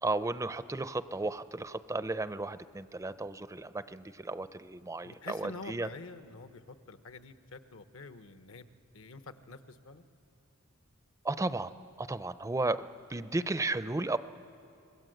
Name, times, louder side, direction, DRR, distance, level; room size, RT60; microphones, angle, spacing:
voice 1, 0.0-5.9 11.2-11.7 12.0-14.2, right 2 dB, 15° right, 13 dB, 0.5 m, -34 dB
voice 2, 5.0-8.7 8.9-10.1, left 3 dB, 70° left, 10 dB, 1.0 m, -47 dB
26.0 x 21.0 x 7.9 m, 2.6 s
head